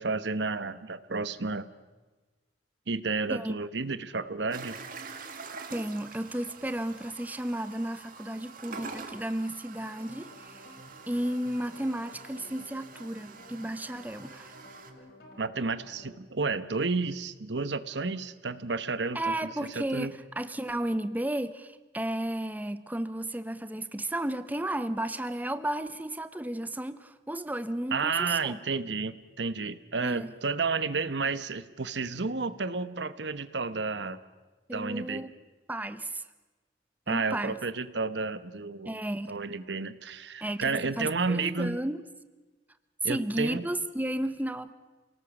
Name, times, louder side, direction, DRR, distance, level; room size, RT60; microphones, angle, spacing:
voice 1, 0.0-1.7 2.9-4.8 15.4-19.2 19.7-20.1 27.9-34.2 34.7-35.2 37.1-39.0 39.3-41.8 43.0-43.6, right 4 dB, 85° right, 14 dB, 1.1 m, -31 dB
sound 1, 4.5-14.9, right 4 dB, 55° right, 2.1 m, -46 dB
voice 2, 5.7-10.7 11.1-14.6 19.1-28.6 30.0-30.3 34.7-35.4 35.7-36.2 37.1-37.6 38.8-39.3 40.4-42.0 43.0-44.7, right 1 dB, 10° right, 12 dB, 0.7 m, -33 dB
sound 2, 9.8-16.2, left 1 dB, 65° left, 5.0 m, -52 dB
28.5 x 18.5 x 7.1 m, 1.3 s
head